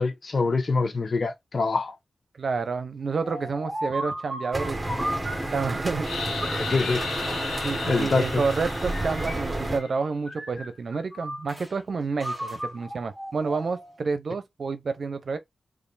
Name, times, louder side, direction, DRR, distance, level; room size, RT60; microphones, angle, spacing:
voice 1, 0.0-1.9 6.7-7.1 7.9-8.4, left 4 dB, 60° left, 0.8 m, -25 dB
voice 2, 2.4-4.8 5.5-6.1 7.6-15.4, right 4 dB, 65° right, 0.7 m, -29 dB
sound 1, 3.2-6.0 6.4-8.2 8.9-10.0 10.3-11.7 12.2-14.0, right 1 dB, 10° left, 1.9 m, -36 dB
sound 2, 4.5-9.8, right 1 dB, 25° right, 1.1 m, -30 dB
sound 3, 6.0-9.9, left 4 dB, 90° left, 1.2 m, -34 dB
3.2 x 2.5 x 4.0 m
cardioid pair, 40°, 0 cm